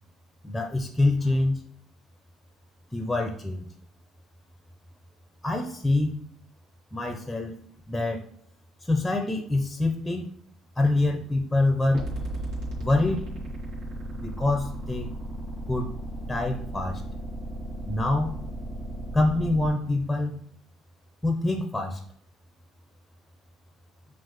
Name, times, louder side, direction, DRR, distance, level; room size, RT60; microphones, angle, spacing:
voice 1, 0.4-1.6 2.9-3.7 5.4-6.2 6.9-7.5 7.9-8.2 8.8-10.3 10.8-12.1 12.8-13.3 14.2-15.1 15.7-15.9 16.3-17.0 17.9-18.4 19.1-20.4 21.2-22.0, left 2 dB, 5° left, 3 dB, 0.6 m, -25 dB
sound 1, 11.9-19.7, right 1 dB, 75° right, 1.4 m, -35 dB
5.7 x 2.4 x 3.1 m, 0.63 s
supercardioid pair, 85°, 0 cm